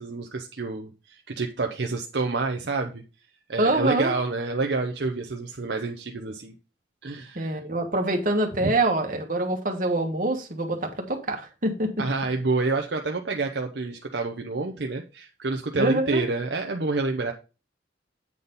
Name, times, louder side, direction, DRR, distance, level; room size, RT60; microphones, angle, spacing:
voice 1, 0.0-3.0 3.5-6.5 7.0-7.6 8.6-8.7 12.0-17.3, right 3 dB, 65° right, 0.7 m, -28 dB
voice 2, 3.6-4.1 7.3-12.0 15.8-16.2, right 2 dB, 45° right, 1.5 m, -25 dB
8.5 x 4.0 x 5.4 m
head